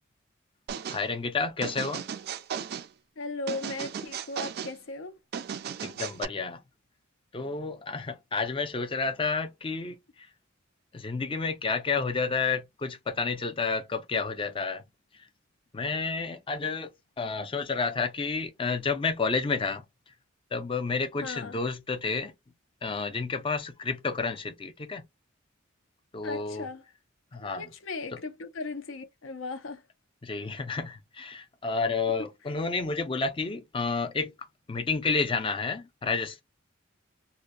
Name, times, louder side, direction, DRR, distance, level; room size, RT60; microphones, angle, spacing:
sound 1, 0.7-1.0 1.6-2.9 3.5-4.7 5.3-6.3, right 7 dB, 50° right, 0.3 m, -36 dB
voice 1, 0.9-2.0 5.8-6.6 7.3-10.0 10.9-14.8 15.7-19.8 20.5-22.3 22.8-25.0 26.1-26.7 27.3-27.7 28.1-28.2 30.2-34.3 34.7-36.4, left 4 dB, 25° left, 0.4 m, -30 dB
voice 2, 3.2-5.2 21.2-21.6 26.2-26.8 27.4-29.8, left 3 dB, 75° left, 0.6 m, -37 dB
2.8 x 2.1 x 2.5 m
head